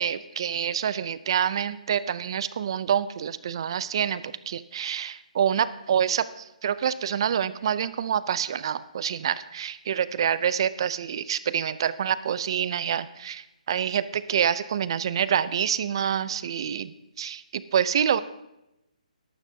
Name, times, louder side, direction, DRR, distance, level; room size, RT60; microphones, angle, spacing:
voice 1, 0.0-18.2, right 8 dB, 35° right, 16 dB, 0.4 m, -27 dB
13.5 x 12.0 x 2.8 m, 0.91 s
hypercardioid pair, 165°, 4 cm